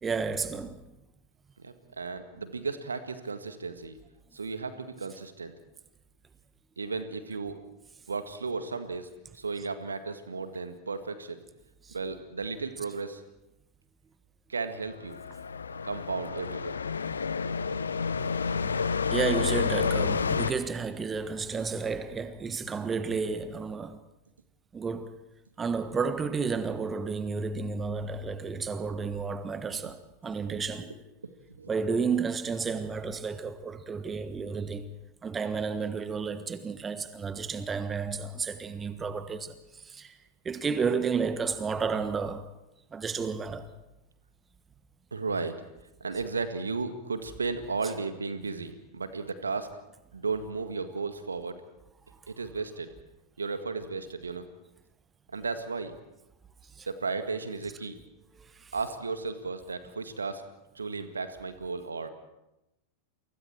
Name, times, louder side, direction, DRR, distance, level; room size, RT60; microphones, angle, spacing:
voice 1, 0.0-0.9 11.8-12.0 19.1-24.0 24.7-25.2 25.6-30.9 31.7-34.9 35.2-40.2 40.4-42.5 42.9-43.7 56.7-56.9 58.4-58.7, right 5 dB, 20° right, 1.4 m, -32 dB
voice 2, 1.6-4.0 4.3-5.5 6.8-7.6 8.1-9.1 9.3-11.4 11.9-13.2 14.5-15.2 15.8-16.8 29.7-29.9 30.4-30.6 31.2-31.7 45.1-45.6 46.0-49.8 50.1-51.6 52.3-52.9 53.4-54.5 55.3-55.9 56.9-58.0 58.7-60.4 60.8-62.1, right 4 dB, 75° right, 1.9 m, -34 dB
sound 1, 14.9-20.5, left 5 dB, 75° left, 1.0 m, -29 dB
30.0 x 24.5 x 4.6 m
figure-of-eight pair, 90°, 0 cm